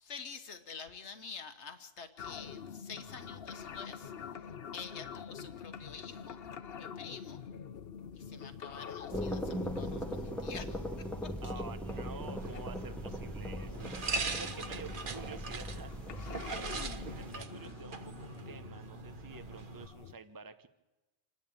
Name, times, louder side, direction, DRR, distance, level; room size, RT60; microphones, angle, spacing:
voice 1, 0.0-4.5 4.7-6.4 6.8-7.4 8.1-11.5 14.0-14.2 14.5-14.8 16.2-16.6, left 5 dB, 90° left, 9 dB, 1.5 m, -48 dB
sound 1, 2.2-20.1, left 7 dB, 65° left, 1.0 m, -47 dB
sound 2, 9.1-17.4, equal, ahead, 1.7 m, -40 dB
voice 2, 11.4-20.7, right 4 dB, 20° right, 9 dB, 1.0 m, -49 dB
sound 3, 11.9-19.9, right 4 dB, 50° right, 1.2 m, -41 dB
27.5 x 11.0 x 8.9 m, 1.1 s
omnidirectional pair, 1.1 m